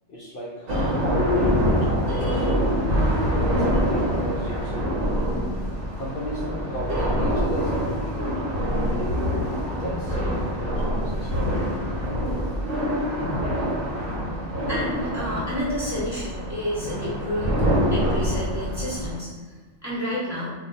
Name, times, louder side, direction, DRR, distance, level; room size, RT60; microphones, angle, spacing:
voice 1, 0.1-3.1 3.5-5.0 6.0-6.4 6.7-8.2 8.9-11.8 12.4-12.5, right 1 dB, 60° left, -6 dB, 0.6 m, -35 dB
sound 1, 0.7-19.2, equal, 50° right, 0.9 m, -25 dB
voice 2, 14.7-17.6 17.9-19.3 19.8-20.5, equal, 15° right, -9 dB, 1.0 m, -30 dB
2.4 x 2.2 x 3.8 m, 1.4 s
omnidirectional pair, 1.3 m